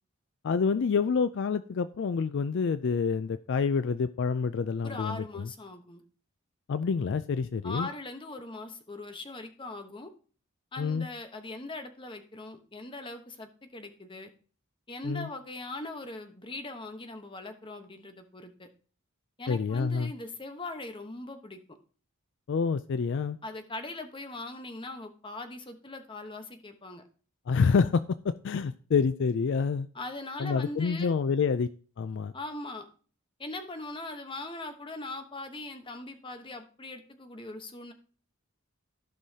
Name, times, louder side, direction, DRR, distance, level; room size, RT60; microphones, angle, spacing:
voice 1, 0.4-5.5 6.7-7.9 10.8-11.1 15.0-15.3 19.5-20.1 22.5-23.4 27.5-29.9 30.4-31.7 32.0-32.3, left 5 dB, 60° left, 13 dB, 0.4 m, -27 dB
voice 2, 4.8-6.0 7.6-10.1 10.7-14.3 14.9-18.7 19.4-21.8 23.4-27.0 29.9-31.2 32.3-32.9 33.4-37.9, left 2 dB, 25° left, 7 dB, 1.0 m, -40 dB
15.0 x 5.5 x 2.8 m, 0.42 s
head